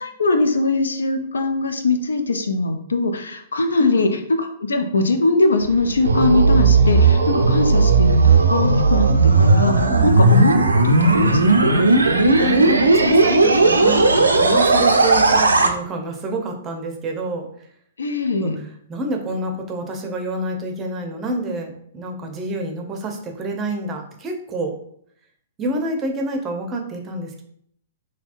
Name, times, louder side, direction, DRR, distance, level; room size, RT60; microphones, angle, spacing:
voice 1, 0.0-11.8 18.0-18.6, left 2 dB, 75° left, 6 dB, 0.4 m, -21 dB
sound 1, 5.6-15.7, right 3 dB, 80° right, 0.4 m, -15 dB
voice 2, 12.4-17.5 18.4-18.5 18.9-24.8 25.6-27.4, right 1 dB, 25° right, 3 dB, 0.6 m, -27 dB
3.3 x 2.7 x 2.5 m, 0.66 s
figure-of-eight pair, 110°, 0 cm